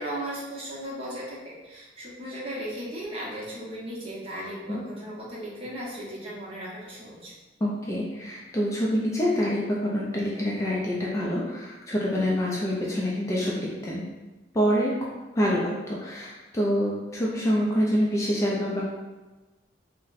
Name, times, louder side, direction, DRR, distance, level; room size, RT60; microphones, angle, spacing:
voice 1, 0.0-7.3, right 1 dB, 30° right, -5 dB, 0.7 m, -36 dB
voice 2, 7.6-14.0 14.5-14.9 15.4-18.9, equal, 15° left, -4 dB, 0.3 m, -26 dB
4.0 x 2.0 x 2.5 m, 1.2 s
head